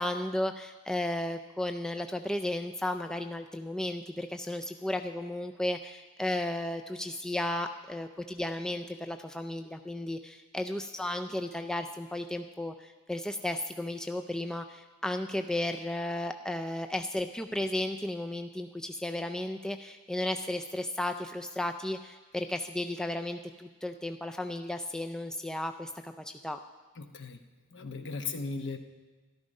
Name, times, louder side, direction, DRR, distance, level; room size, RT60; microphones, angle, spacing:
voice 1, 0.0-26.6, left 1 dB, 5° left, 6 dB, 0.3 m, -34 dB
voice 2, 27.0-27.4 27.7-28.8, left 4 dB, 55° left, 7 dB, 1.0 m, -37 dB
13.5 x 12.0 x 5.3 m, 1.2 s
head